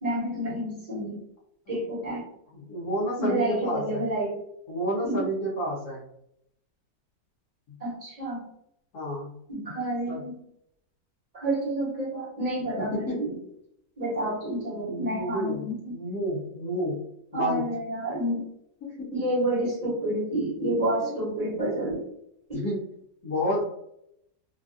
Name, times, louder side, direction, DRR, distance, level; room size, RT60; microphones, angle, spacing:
voice 1, 0.0-1.2 1.7-2.2 3.2-4.3 5.0-5.2 7.8-8.4 9.5-10.4 11.3-13.3 14.0-16.0 17.3-18.4 19.1-22.0 22.5-22.6, right 1 dB, 25° right, -6 dB, 0.9 m, -29 dB
voice 2, 2.5-4.0 4.7-6.0 7.7-7.8 8.9-9.3 10.1-10.2 12.8-13.2 14.2-14.3 14.8-15.6 15.9-17.0 17.3-17.7 18.8-19.2 21.0-21.2 22.5-22.8 23.2-23.6, equal, 60° left, -6 dB, 1.2 m, -30 dB
3.2 x 2.2 x 2.5 m, 0.77 s
omnidirectional pair, 1.9 m